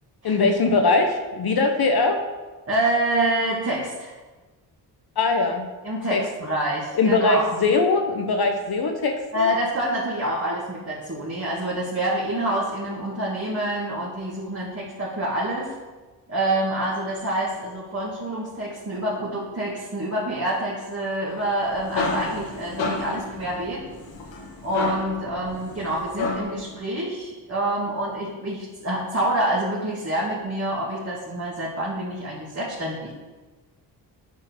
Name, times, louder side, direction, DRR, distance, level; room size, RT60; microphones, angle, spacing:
voice 1, 0.2-2.2 5.2-5.7 6.1-6.2 6.9-9.5, left 3 dB, 55° left, 5 dB, 1.0 m, -21 dB
voice 2, 2.7-4.1 5.8-7.5 9.3-15.7 16.3-23.8 24.6-33.1, right 1 dB, 35° right, -7 dB, 2.2 m, -27 dB
Rotating Metal Fan, 21.5-26.7, left 3 dB, 85° left, 1.7 m, -31 dB
8.2 x 4.5 x 6.3 m, 1.3 s
cardioid pair, 75°, 44 cm